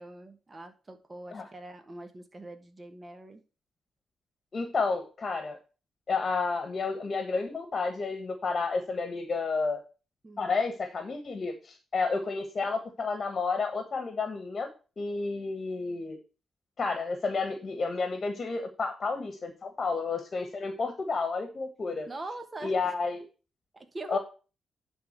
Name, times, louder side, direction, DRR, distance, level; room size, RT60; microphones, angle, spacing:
voice 1, 0.0-3.4 10.2-10.5 22.1-22.9 23.7-24.2, right 2 dB, 25° right, 7 dB, 1.2 m, -43 dB
voice 2, 4.5-5.6 6.1-9.8 10.4-14.7 15.0-16.2 16.8-22.1 22.6-23.2 24.1-24.2, left 4 dB, 40° left, 8 dB, 1.3 m, -31 dB
10.5 x 3.7 x 6.6 m, 0.34 s
cardioid pair, 95°, 0 cm